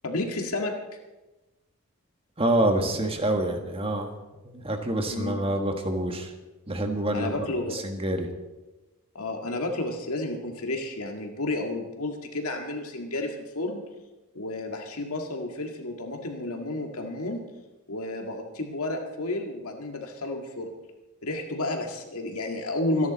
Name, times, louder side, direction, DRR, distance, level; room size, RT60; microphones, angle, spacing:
voice 1, 0.0-0.7 5.1-5.4 7.1-7.8 9.1-13.9 14.3-17.4 17.9-20.7 21.2-23.1, left 2 dB, 75° left, 3 dB, 1.9 m, -31 dB
voice 2, 2.4-4.1 4.4-6.3 6.7-7.4 7.7-8.3, right 1 dB, 25° right, 5 dB, 1.6 m, -27 dB
26.0 x 10.5 x 4.1 m, 1.1 s
head